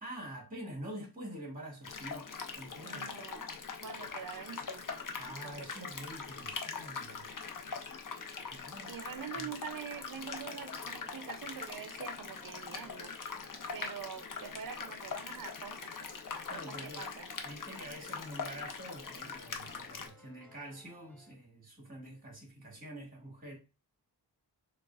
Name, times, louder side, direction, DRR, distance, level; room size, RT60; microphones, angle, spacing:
voice 1, 0.0-2.3 2.6-3.1 5.2-7.4 8.5-8.9 9.3-9.5 16.5-17.1 17.4-23.5, right 1 dB, 20° right, 1.7 m, -46 dB
sound 1, 1.8-20.1, left 5 dB, 50° left, 0.6 m, -42 dB
voice 2, 2.8-3.5 3.8-5.0 5.4-6.0 8.9-13.1 13.7-16.1 16.5-17.3, right 8 dB, 55° right, 0.5 m, -45 dB
sound 2, 10.3-21.3, left 1 dB, 5° left, 0.7 m, -61 dB
6.4 x 2.3 x 2.3 m
wide cardioid pair, 95°, 41 cm